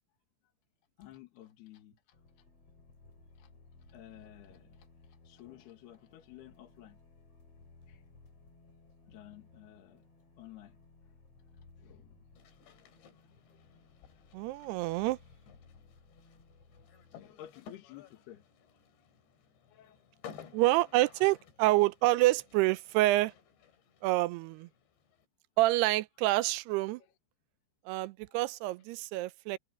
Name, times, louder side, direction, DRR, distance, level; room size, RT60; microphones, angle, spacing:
voice 1, 1.0-2.5 3.4-3.5 3.8-7.0 7.9-8.0 9.1-10.0 10.4-10.8 11.0-11.1 11.6-12.2 12.6-13.8 14.0-14.5 17.1-19.1 19.7-20.1 20.4-20.7 21.2-21.3 22.0-22.2 27.0-27.1 28.3-28.4, left 13 dB, 70° left, 3.6 m, -55 dB
sound 1, 2.1-17.5, left 3 dB, 35° left, 4.8 m, -60 dB
sound 2, 12.4-25.3, left 7 dB, 90° left, 5.1 m, -56 dB
voice 2, 14.3-15.2 20.5-23.3 24.0-24.7 25.6-27.0 27.9-29.6, right 18 dB, 80° right, 2.5 m, -27 dB
omnidirectional pair, 4.9 m